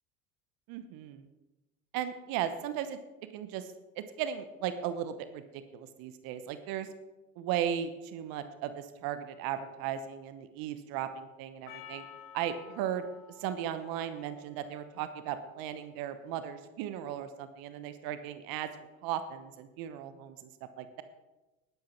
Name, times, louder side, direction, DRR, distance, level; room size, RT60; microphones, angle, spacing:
voice 1, 0.7-1.3 1.9-3.0 3.3-6.9 7.4-12.0 12.3-13.0 13.4-18.7 19.0-20.5 20.8-21.0, right 10 dB, 55° right, 11 dB, 1.1 m, -36 dB
Percussion, 11.7-16.1, left 8 dB, 65° left, 1.5 m, -53 dB
11.5 x 11.5 x 4.5 m, 1.1 s
hypercardioid pair, 75°, 41 cm